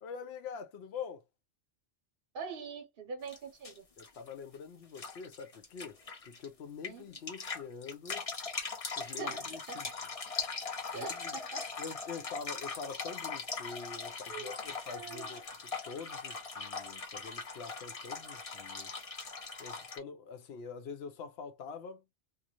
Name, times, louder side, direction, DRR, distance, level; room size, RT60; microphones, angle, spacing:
voice 1, 0.0-1.2 4.0-6.0 6.2-8.2 9.0-9.9 10.9-11.4 11.8-19.0 19.6-22.0, left 5 dB, 65° left, 0.9 m, -45 dB
voice 2, 2.3-3.9 6.9-7.0 9.0-10.0 10.9-11.7 14.3-14.5 14.9-15.3, right 4 dB, 55° right, 0.9 m, -43 dB
sound 1, 3.3-3.4 3.6-4.5 4.9-6.5 6.8-20.0, left 4 dB, 35° left, 0.7 m, -40 dB
2.5 x 2.4 x 2.8 m
omnidirectional pair, 1.2 m